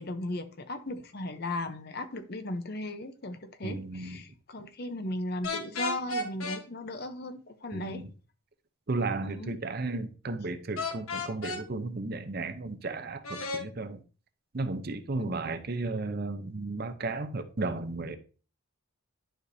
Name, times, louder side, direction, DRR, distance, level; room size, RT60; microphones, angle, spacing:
voice 1, 0.0-8.0 9.2-9.5 15.2-15.4, left 1 dB, 45° left, 0.7 m, -36 dB
voice 2, 3.6-4.2 7.7-8.1 8.9-14.0 14.5-18.2, right 3 dB, 45° right, 0.6 m, -34 dB
sound 1, 5.4-6.6 10.8-11.6 13.2-13.6, left 3 dB, 85° left, 1.1 m, -33 dB
11.0 x 4.9 x 2.7 m
head